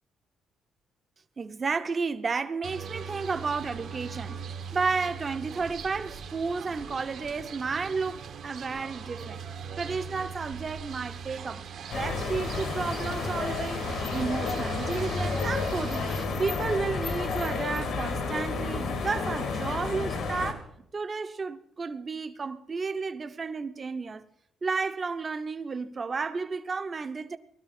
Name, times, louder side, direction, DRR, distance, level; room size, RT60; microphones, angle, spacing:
voice 1, 1.4-4.4 4.7-9.4 9.8-11.6 11.9-13.9 14.1-16.1 16.4-24.2 24.6-27.4, right 4 dB, 35° right, 0.9 m, -32 dB
sound 1, 2.6-16.3, right 6 dB, 70° right, 1.7 m, -40 dB
sound 2, 11.9-20.5, left 4 dB, 75° left, 2.7 m, -31 dB
19.0 x 12.0 x 4.4 m
cardioid pair, 90°, 0 cm